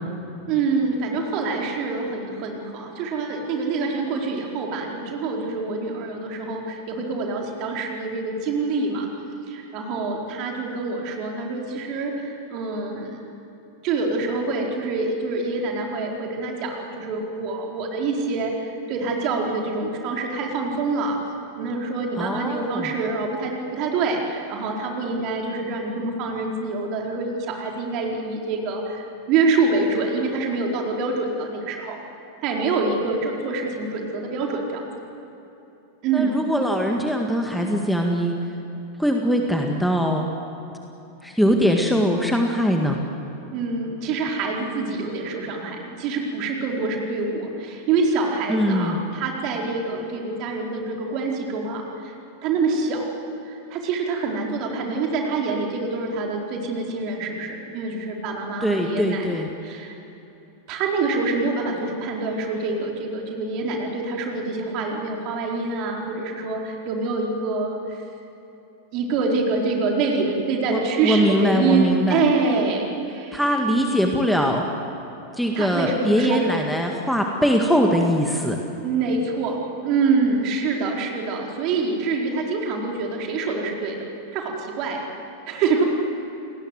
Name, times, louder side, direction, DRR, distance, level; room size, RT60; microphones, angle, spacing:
voice 1, 0.5-9.1 9.5-13.2 13.8-21.2 21.6-32.0 32.4-34.9 36.0-36.3 43.5-52.2 52.4-53.1 53.5-59.9 60.7-68.0 68.9-73.4 75.5-76.4 78.8-85.1 85.5-85.8, right 3 dB, 40° right, 0 dB, 4.4 m, -26 dB
voice 2, 22.2-22.9 36.1-38.4 39.0-40.3 41.2-43.0 48.5-49.0 58.6-59.5 70.7-72.2 73.3-74.7 75.3-78.6, equal, ahead, 2 dB, 2.0 m, -22 dB
29.0 x 20.0 x 7.9 m, 3.0 s
figure-of-eight pair, 90°, 0 cm